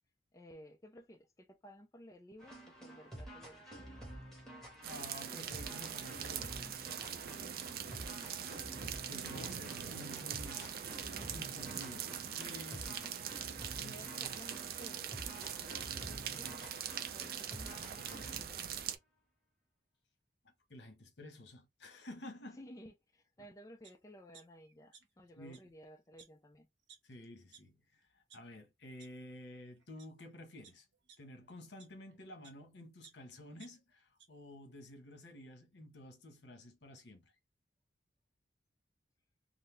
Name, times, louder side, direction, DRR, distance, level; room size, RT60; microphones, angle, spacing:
voice 1, 0.3-3.9 9.4-10.4 11.1-12.0 12.9-13.2 13.7-16.7 17.1-18.8 22.5-26.7, equal, 20° left, 0.4 m, -56 dB
sound 1, 2.4-18.5, right 1 dB, 5° left, 1.2 m, -50 dB
voice 2, 4.8-6.9 9.0-13.3 13.8-13.9 14.2-14.3 20.4-22.6 25.4-25.6 27.0-30.9 31.2-37.2, left 1 dB, 75° left, 1.0 m, -51 dB
sound 2, 4.8-19.0, right 9 dB, 55° right, 0.4 m, -42 dB
sound 3, 23.8-23.9 24.3-25.2 25.5-25.6 26.2-26.3 26.9-27.0 27.5-27.6 28.1-28.4 29.0-29.1 29.8-30.1 30.6-32.6 33.0-34.3 34.7-34.8, right 6 dB, 85° right, 1.0 m, -59 dB
4.0 x 2.1 x 3.2 m
head